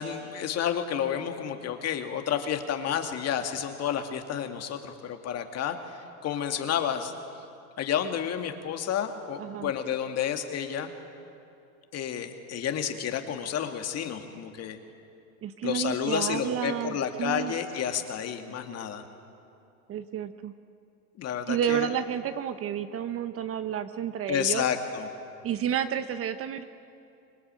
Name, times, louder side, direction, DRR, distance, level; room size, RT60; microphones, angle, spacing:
voice 1, 0.0-5.8 6.2-7.1 7.8-10.9 11.9-14.8 15.6-19.0 21.2-21.9 24.3-25.1, left 8 dB, 35° left, 5 dB, 2.3 m, -30 dB
voice 2, 9.4-9.7 15.4-17.5 19.9-20.5 21.5-24.6 25.4-26.6, right 9 dB, 30° right, 10 dB, 1.0 m, -30 dB
25.5 x 20.5 x 9.0 m, 2.6 s
supercardioid pair, 125°, 44 cm